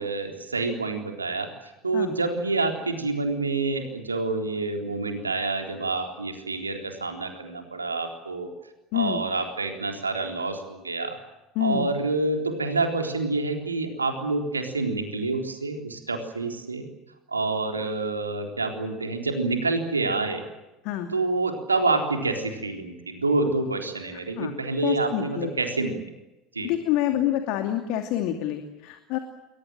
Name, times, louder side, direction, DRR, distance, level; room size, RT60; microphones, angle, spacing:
voice 1, 0.0-1.5 1.8-8.5 8.9-11.2 11.6-16.9 17.3-20.4 21.1-26.0 26.5-26.7, right 3 dB, 85° right, 4 dB, 3.8 m, -27 dB
voice 2, 11.5-11.9 20.8-21.1 24.4-24.5 24.8-25.5 26.6-29.2, left 12 dB, 55° left, 6 dB, 2.7 m, -27 dB
29.5 x 22.5 x 7.6 m, 1.0 s
figure-of-eight pair, 70°, 0 cm